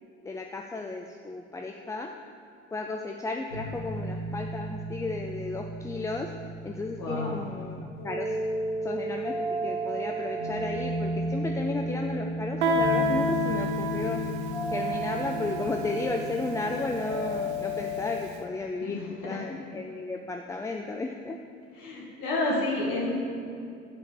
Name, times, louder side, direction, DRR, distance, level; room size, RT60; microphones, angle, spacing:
voice 1, 0.2-2.1 2.7-6.3 6.6-8.4 8.8-9.3 9.6-14.2 14.7-19.0 19.2-21.4, left 3 dB, 10° left, 3 dB, 0.3 m, -34 dB
sound 1, 3.5-18.2, equal, 85° left, 1.3 m, -33 dB
voice 2, 7.0-7.5 18.8-19.4 21.7-23.1, left 2 dB, 60° left, -4 dB, 2.2 m, -30 dB
Guitar, 12.6-18.1, right 1 dB, 70° right, 0.7 m, -30 dB
7.4 x 4.8 x 6.9 m, 2.6 s
figure-of-eight pair, 60°, 35 cm